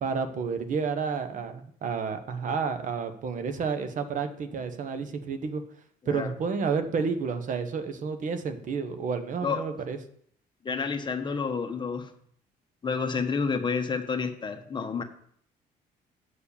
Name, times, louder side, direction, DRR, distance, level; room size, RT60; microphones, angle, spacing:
voice 1, 0.0-5.6 6.1-10.0, right 5 dB, 55° right, 9 dB, 1.1 m, -30 dB
voice 2, 10.6-12.1 12.8-15.0, left 5 dB, 30° left, 6 dB, 1.2 m, -29 dB
8.5 x 4.8 x 7.1 m, 0.65 s
cardioid pair, 105°, 16 cm